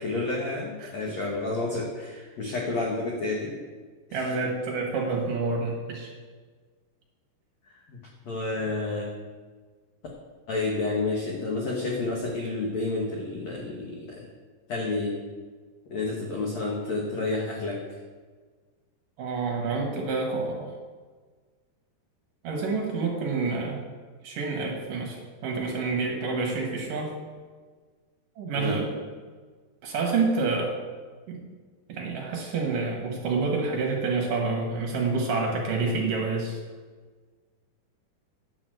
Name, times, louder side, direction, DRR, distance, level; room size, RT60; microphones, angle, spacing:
voice 1, 0.0-3.6 4.1-4.3 7.9-8.0 8.2-9.1 10.5-14.3 14.7-15.2 15.9-17.8 28.6-28.8, left 3 dB, 75° left, -1 dB, 1.6 m, -30 dB
voice 2, 4.1-6.1 19.2-20.7 22.4-23.8 24.2-27.1 28.4-28.9 29.8-30.7 31.3-31.5 31.9-36.6, right 4 dB, 65° right, 0 dB, 2.4 m, -28 dB
9.7 x 5.9 x 7.7 m, 1.5 s
omnidirectional pair, 5.0 m